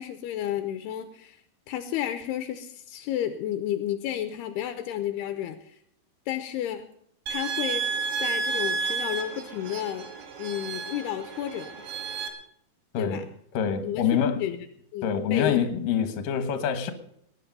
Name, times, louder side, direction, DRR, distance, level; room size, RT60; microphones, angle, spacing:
voice 1, 0.0-1.4 1.7-5.8 6.3-6.9 7.3-7.8 8.2-10.1 10.4-11.8 13.0-13.3 13.8-14.1 14.4-14.6 14.9-15.6, left 11 dB, 80° left, 9 dB, 2.8 m, -31 dB
sound 1, 7.3-12.3, right 5 dB, 75° right, 3.8 m, -31 dB
voice 2, 13.5-14.5 15.0-16.9, left 7 dB, 65° left, 9 dB, 2.9 m, -26 dB
20.0 x 10.5 x 5.4 m, 0.69 s
omnidirectional pair, 4.7 m